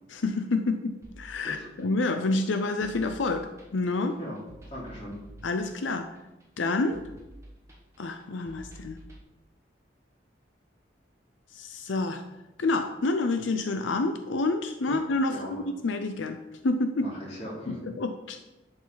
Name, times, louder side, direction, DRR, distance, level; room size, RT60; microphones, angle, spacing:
voice 1, 0.1-4.2 5.4-6.1 6.6-7.0 8.0-9.0 11.5-12.2 12.6-16.4 16.6-17.1 17.7-18.4, left 3 dB, 90° left, 7 dB, 0.6 m, -28 dB
sound 1, 1.0-9.2, right 1 dB, 15° right, 1.3 m, -50 dB
voice 2, 4.7-5.2 14.9-15.0 15.3-15.5 17.0-17.8, equal, 35° left, -5 dB, 3.1 m, -38 dB
11.0 x 5.3 x 4.0 m, 1.0 s
head